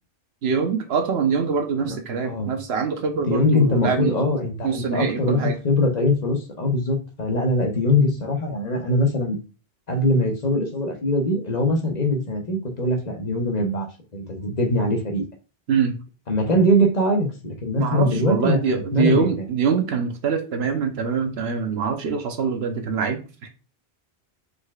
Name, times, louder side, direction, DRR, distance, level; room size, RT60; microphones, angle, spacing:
voice 1, 0.4-4.2 4.6-5.6 15.7-15.9 17.8-23.5, right 5 dB, 90° right, 5 dB, 1.1 m, -24 dB
voice 2, 3.3-9.4 9.9-15.2 16.3-19.4, left 1 dB, 45° left, 2 dB, 1.0 m, -22 dB
4.8 x 4.1 x 2.4 m, 0.34 s
omnidirectional pair, 1.0 m